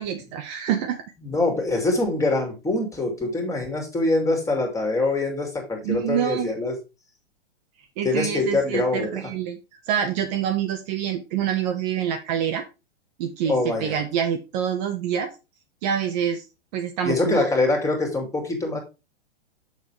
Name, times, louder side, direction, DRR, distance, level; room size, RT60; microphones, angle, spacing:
voice 1, 0.0-1.0 5.8-6.5 8.0-9.6 9.9-12.6 13.2-15.3 15.8-16.4 16.7-17.5, right 9 dB, 40° right, 6 dB, 1.2 m, -26 dB
voice 2, 1.2-6.8 8.0-9.3 13.5-14.0 17.0-18.8, left 2 dB, 10° left, 3 dB, 2.5 m, -24 dB
6.8 x 6.6 x 3.4 m, 0.27 s
hypercardioid pair, 115°, 32 cm